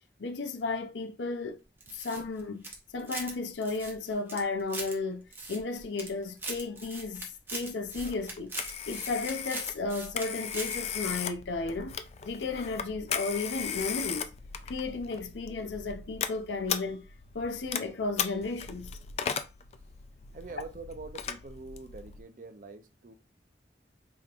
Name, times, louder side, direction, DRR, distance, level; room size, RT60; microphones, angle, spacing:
voice 1, 0.2-1.6 1.9-2.6 2.9-8.5 8.9-12.0 12.2-14.3 14.7-17.0 17.3-18.9, left 3 dB, 90° left, 0.6 m, -34 dB
sound 1, 1.8-3.3 3.6-4.9 5.3-6.1 6.4-10.3 10.5-10.7, right 2 dB, 15° right, 0.8 m, -40 dB
Telephone, 8.0-22.2, left 8 dB, 35° left, 0.3 m, -37 dB
voice 2, 20.3-23.1, right 3 dB, 50° right, 0.6 m, -44 dB
5.0 x 2.9 x 2.5 m
head